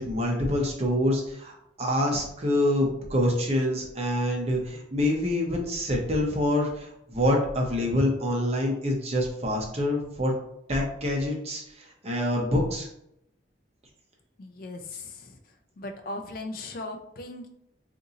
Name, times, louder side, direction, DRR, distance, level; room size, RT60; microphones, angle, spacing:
voice 1, 0.0-10.3 10.7-12.9, left 1 dB, 35° right, 0 dB, 0.7 m, -26 dB
voice 2, 14.4-15.4 15.8-17.5, left 2 dB, 50° left, 5 dB, 0.4 m, -38 dB
2.6 x 2.6 x 3.8 m, 0.77 s
head